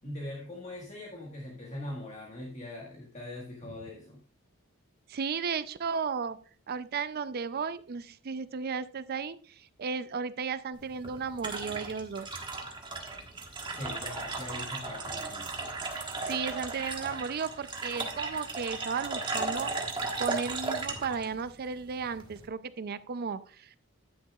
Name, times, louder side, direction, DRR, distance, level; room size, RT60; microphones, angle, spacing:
voice 1, 0.0-4.2 13.7-15.5, left 1 dB, 35° left, -2 dB, 1.5 m, -41 dB
voice 2, 5.1-6.4 6.7-12.4 15.9-19.7 20.2-23.8, right 5 dB, 45° right, 14 dB, 0.4 m, -34 dB
sound 1, 10.7-22.5, right 3 dB, 20° right, 1.3 m, -36 dB
10.5 x 9.5 x 2.4 m, 0.43 s
head